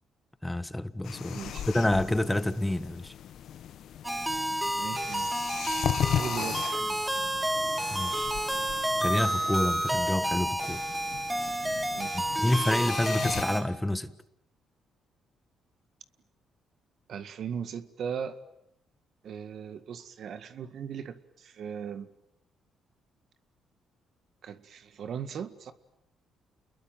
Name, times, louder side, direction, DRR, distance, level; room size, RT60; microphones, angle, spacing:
voice 1, 0.4-1.4 1.7-3.1 7.9-8.3 9.0-10.8 12.1-14.1, left 1 dB, 10° left, 1.4 m, -28 dB
sound 1, 1.0-13.4, left 10 dB, 70° left, 1.1 m, -37 dB
voice 2, 1.3-1.7 4.7-5.3 6.0-7.3 11.9-12.3 17.1-18.4 19.2-22.1 24.4-25.7, right 7 dB, 65° right, 1.9 m, -38 dB
sound 2, 4.0-13.6, right 1 dB, 10° right, 3.7 m, -30 dB
29.5 x 22.0 x 9.3 m
cardioid pair, 90°, 0 cm